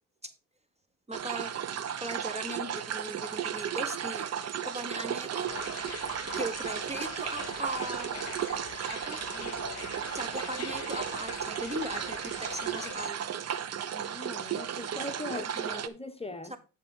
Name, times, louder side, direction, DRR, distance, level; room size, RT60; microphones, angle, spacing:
voice 1, 1.1-1.5 2.0-4.3 4.6-5.7 6.3-8.2 8.8-9.2 10.1-13.3 15.3-15.8 16.5-16.6, right 1 dB, 20° right, 1.1 m, -38 dB
sound 1, 1.1-15.9, right 9 dB, 45° right, 0.8 m, -35 dB
sound 2, 5.5-13.1, left 11 dB, 45° left, 0.6 m, -44 dB
voice 2, 9.2-9.7 13.9-16.6, left 2 dB, 15° left, 1.2 m, -41 dB
11.0 x 3.7 x 5.4 m
supercardioid pair, 80°, 35 cm